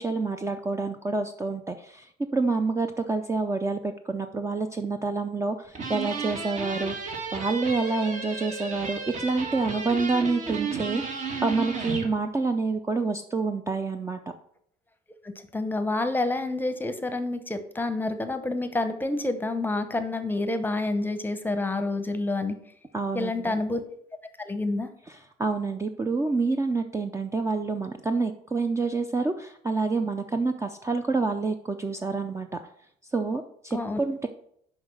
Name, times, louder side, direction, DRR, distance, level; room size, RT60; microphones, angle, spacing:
voice 1, 0.0-7.0 7.3-14.2 22.9-23.6 25.1-32.5 33.1-34.3, right 3 dB, 15° right, 7 dB, 0.5 m, -28 dB
sound 1, 5.7-12.1, right 4 dB, 45° right, 1.6 m, -33 dB
voice 2, 15.5-22.6 23.1-23.8 24.4-24.9 33.7-34.0, left 2 dB, 10° left, 9 dB, 0.9 m, -28 dB
5.9 x 5.2 x 6.4 m, 0.67 s
cardioid pair, 110°, 17 cm